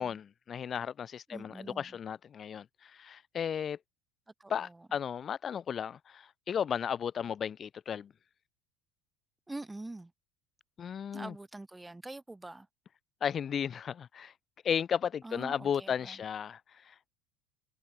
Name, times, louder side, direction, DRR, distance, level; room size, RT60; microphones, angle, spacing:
voice 1, 0.0-3.8 4.5-8.1 10.8-11.3 13.2-14.3 14.6-16.9, left 8 dB, 30° left, 0.4 m, -34 dB
voice 2, 1.3-2.0 4.4-4.9 9.5-10.1 11.1-12.7 15.2-16.2, right 2 dB, 5° right, 0.8 m, -45 dB
cardioid pair, 140°, 0 cm